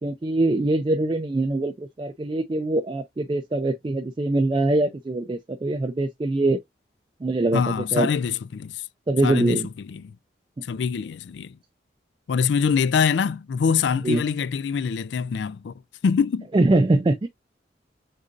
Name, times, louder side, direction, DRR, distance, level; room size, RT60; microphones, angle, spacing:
voice 1, 0.0-6.6 7.2-8.1 9.1-9.7 14.0-14.2 16.5-17.3, right 2 dB, 25° right, 0.3 m, -23 dB
voice 2, 7.5-8.8 9.2-10.2 10.6-11.6 12.3-15.7 16.0-16.5, left 6 dB, 75° left, 0.3 m, -24 dB
6.5 x 2.6 x 2.5 m
head